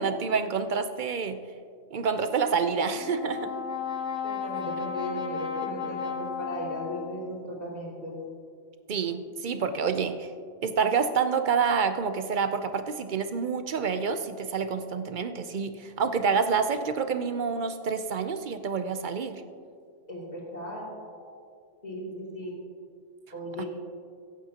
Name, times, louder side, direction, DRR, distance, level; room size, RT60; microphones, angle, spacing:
voice 1, 0.0-1.4 1.9-3.5 8.9-10.3 10.6-19.4 23.6-23.7, right 5 dB, 50° right, 9 dB, 0.7 m, -28 dB
Brass instrument, 3.0-7.4, left 6 dB, 80° left, 1.2 m, -34 dB
voice 2, 4.2-8.2 20.1-20.8 21.8-22.5 23.3-23.7, left 1 dB, 35° left, -5 dB, 3.0 m, -36 dB
24.5 x 8.5 x 2.9 m, 2.2 s
omnidirectional pair, 1.2 m